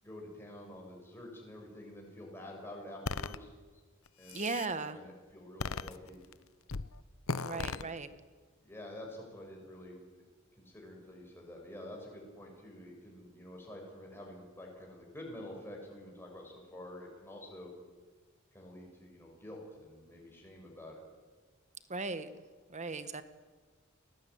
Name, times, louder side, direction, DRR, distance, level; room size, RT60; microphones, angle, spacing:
voice 1, 0.0-3.5 4.2-4.4 4.7-6.2 7.5-7.8 8.6-10.0 10.6-17.7 18.5-21.0, left 1 dB, 10° left, -1 dB, 6.0 m, -48 dB
sound 1, 3.1-3.4 4.1-4.7 5.6-6.3 6.7-6.9 7.3-7.8, left 4 dB, 90° left, 0.9 m, -36 dB
voice 2, 4.3-5.0 7.4-8.1 21.9-22.3 22.7-23.2, right 3 dB, 35° right, 11 dB, 1.5 m, -37 dB
29.5 x 19.0 x 9.5 m, 1.4 s
head